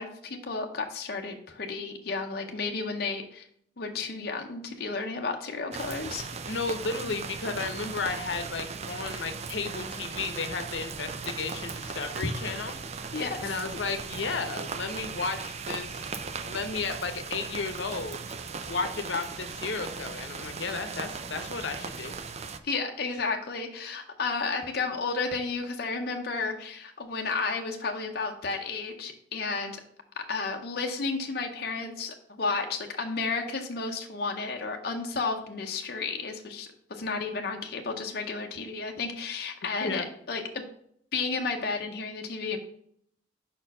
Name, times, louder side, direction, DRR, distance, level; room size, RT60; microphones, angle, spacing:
voice 1, 0.0-3.5 3.8-6.4 13.1-13.6 20.7-20.8 22.6-29.8 30.2-40.7 41.1-42.6, left 4 dB, 60° left, 3 dB, 0.7 m, -32 dB
sound 1, 5.7-22.6, right 5 dB, 35° right, 0.4 m, -38 dB
voice 2, 6.5-12.7 13.4-16.2 16.4-18.2 18.7-22.2 39.8-40.0, left 4 dB, 85° left, 8 dB, 0.8 m, -33 dB
5.5 x 4.4 x 5.3 m, 0.67 s
head